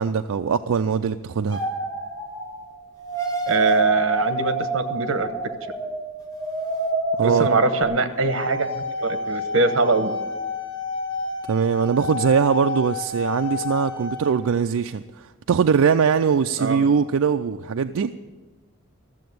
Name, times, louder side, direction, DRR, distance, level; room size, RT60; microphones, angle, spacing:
voice 1, 0.0-1.6 7.2-7.5 11.5-18.1, right 6 dB, 80° right, 7 dB, 0.4 m, -21 dB
sound 1, 1.5-2.6 3.0-7.8, right 2 dB, 15° left, 2.0 m, -27 dB
voice 2, 3.5-5.3 7.2-10.1 16.6-16.9, right 3 dB, 65° right, 10 dB, 1.0 m, -22 dB
sound 2, 8.1-14.3, left 3 dB, 70° left, 2.5 m, -30 dB
14.0 x 7.6 x 9.3 m, 1.3 s
head